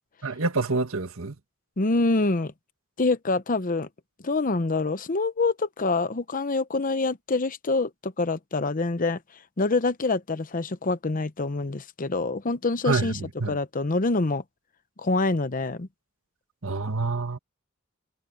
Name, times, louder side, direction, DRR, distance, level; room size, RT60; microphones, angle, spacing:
voice 1, 0.2-1.4 12.9-13.6 16.6-17.4, right 3 dB, 90° right, 1.8 m, -27 dB
voice 2, 1.8-2.5 3.0-3.9 4.2-9.2 9.6-13.2 13.5-14.4 15.0-15.9, left 3 dB, 40° left, 0.8 m, -26 dB
head